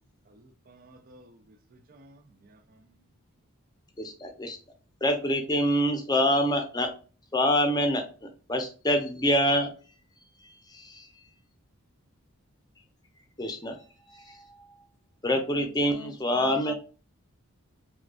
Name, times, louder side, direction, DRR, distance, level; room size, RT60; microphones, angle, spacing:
voice 1, 0.3-2.9, right 1 dB, 40° right, 0.4 m, -56 dB
voice 2, 4.0-4.6 5.0-6.9 7.3-8.0 8.5-9.7 10.7-11.1 13.4-13.8 14.3-14.4 15.2-16.7, equal, 20° left, 0.6 m, -25 dB
voice 3, 15.3-16.7, left 3 dB, 80° left, 0.6 m, -40 dB
4.9 x 2.3 x 2.3 m
head